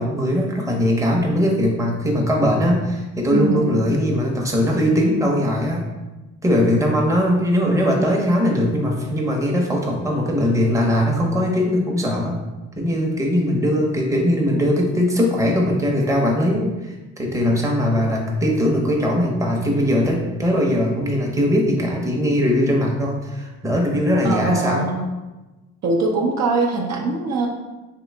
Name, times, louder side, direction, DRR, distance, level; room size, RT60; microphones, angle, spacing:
voice 1, 0.0-5.8 6.4-12.4 12.8-24.9, equal, 10° right, -1 dB, 0.8 m, -20 dB
voice 2, 3.3-3.7 24.2-25.0 25.8-27.5, right 3 dB, 60° right, 0 dB, 0.7 m, -22 dB
3.8 x 2.9 x 3.3 m, 1.1 s
cardioid pair, 90°, 30 cm